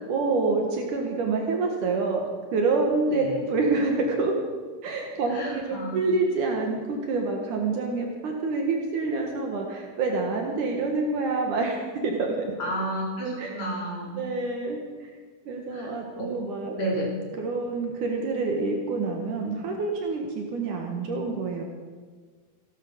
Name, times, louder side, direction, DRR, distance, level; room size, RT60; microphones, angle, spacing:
voice 1, 0.1-4.3 4.8-12.5 13.4-13.5 14.2-15.1 15.5-16.8 17.4-21.6, right 3 dB, 70° right, 1 dB, 3.0 m, -27 dB
voice 2, 5.3-6.0 12.6-14.2 15.7-16.3 16.7-17.1, right 1 dB, 40° left, -4 dB, 4.7 m, -31 dB
16.5 x 12.0 x 6.7 m, 1.5 s
omnidirectional pair, 3.9 m